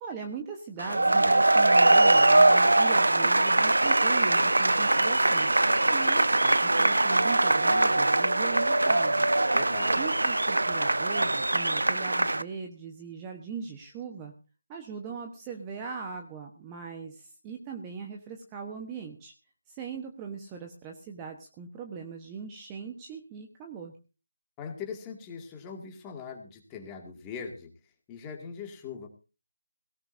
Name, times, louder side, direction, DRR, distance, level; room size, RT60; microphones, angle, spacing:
voice 1, 0.0-9.3 10.0-14.3 14.7-19.3 19.7-23.9, right 5 dB, 15° right, 3 dB, 1.2 m, -40 dB
sound 1, 0.8-12.4, right 2 dB, 75° right, 0.8 m, -22 dB
voice 2, 9.5-10.0 24.6-27.7 28.1-29.1, left 6 dB, 15° left, 3 dB, 2.3 m, -41 dB
17.5 x 17.5 x 2.7 m, 0.33 s
figure-of-eight pair, 160°, 0 cm